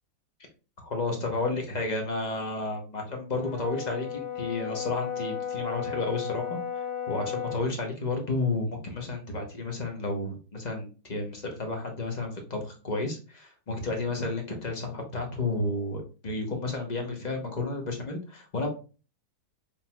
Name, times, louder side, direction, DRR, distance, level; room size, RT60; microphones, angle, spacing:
voice 1, 0.8-6.6 7.1-18.7, left 2 dB, 30° left, 2 dB, 1.0 m, -32 dB
Brass instrument, 3.4-7.7, left 8 dB, 65° left, 1.4 m, -34 dB
5.5 x 3.5 x 2.3 m, 0.34 s
omnidirectional pair, 1.7 m